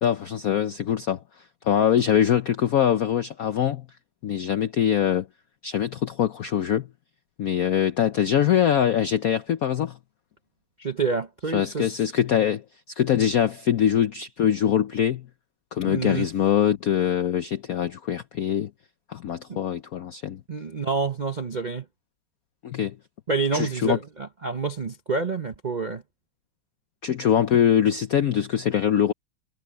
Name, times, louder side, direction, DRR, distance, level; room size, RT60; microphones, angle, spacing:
voice 1, 0.0-1.2 1.6-3.9 4.2-5.3 5.6-6.9 7.4-10.0 11.5-12.6 13.0-15.3 15.7-18.7 19.1-20.4 22.6-23.0 23.5-24.0 27.0-29.1, left 9 dB, 80° left, 0.8 m, -23 dB
voice 2, 10.8-12.1 15.9-16.3 19.5-19.6 20.5-21.8 23.3-26.0, right 4 dB, 80° right, 0.4 m, -28 dB
omnidirectional pair, 2.4 m